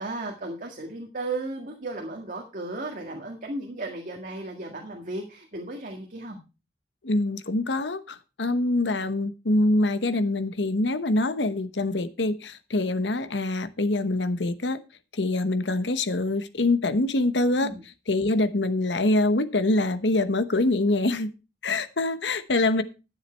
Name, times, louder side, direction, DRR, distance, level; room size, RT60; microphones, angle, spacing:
voice 1, 0.0-6.4 17.5-17.8, right 2 dB, 50° right, 1 dB, 1.8 m, -35 dB
voice 2, 7.0-14.8 15.1-17.7 18.1-21.3 21.6-22.8, left 2 dB, 80° left, 13 dB, 1.0 m, -24 dB
12.5 x 7.4 x 4.5 m, 0.30 s
head